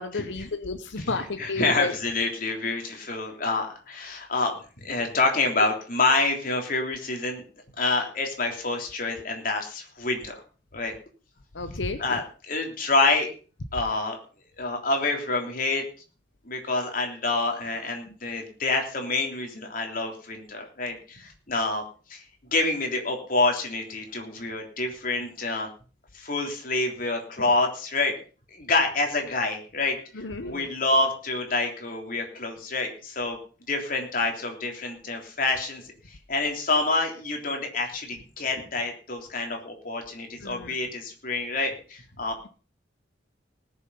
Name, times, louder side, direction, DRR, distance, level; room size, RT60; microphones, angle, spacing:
voice 1, 0.0-1.9 11.5-12.2 30.2-30.7 40.4-40.7, left 3 dB, 85° left, 9 dB, 1.0 m, -32 dB
voice 2, 1.0-4.5 4.8-7.4 7.8-10.3 10.7-10.9 12.0-13.3 13.7-14.2 14.6-15.8 16.4-21.8 22.1-22.2 22.5-25.7 26.1-28.1 28.5-33.4 33.7-35.8 36.1-42.5, left 3 dB, 50° left, 2 dB, 3.4 m, -27 dB
19.5 x 7.3 x 5.6 m, 0.38 s
head